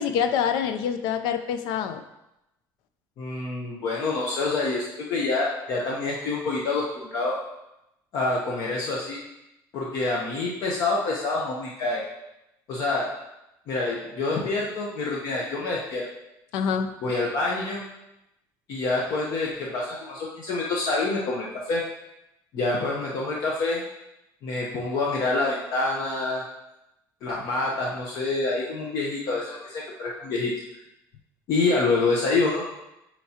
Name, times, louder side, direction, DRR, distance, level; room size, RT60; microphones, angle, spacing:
voice 1, 0.0-2.0 16.5-16.9, left 7 dB, 70° left, 9 dB, 0.6 m, -26 dB
voice 2, 3.2-7.4 8.1-9.2 9.7-12.0 12.7-13.1 13.7-16.1 17.0-17.8 18.7-21.8 22.5-23.8 24.4-26.4 27.2-30.5 31.5-32.6, left 3 dB, 50° left, -3 dB, 0.9 m, -27 dB
8.2 x 4.5 x 2.9 m, 0.90 s
cardioid pair, 175°, 8 cm